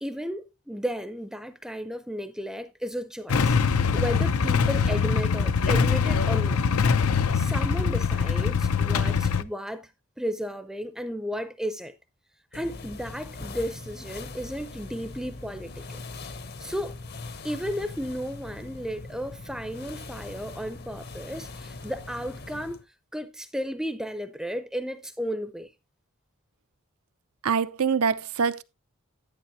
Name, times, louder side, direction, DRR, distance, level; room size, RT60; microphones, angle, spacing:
voice 1, 0.0-3.6 3.9-6.7 7.3-9.9 10.2-12.0 12.5-16.0 16.6-17.0 17.4-22.8 23.1-25.7, equal, ahead, 0.5 m, -34 dB
Motorcycle / Engine starting / Idling, 3.3-9.4, left 5 dB, 80° left, 0.6 m, -23 dB
sound 1, 12.5-22.8, left 3 dB, 45° left, 0.8 m, -41 dB
voice 2, 27.4-28.6, right 6 dB, 80° right, 0.7 m, -24 dB
10.5 x 9.5 x 2.7 m
head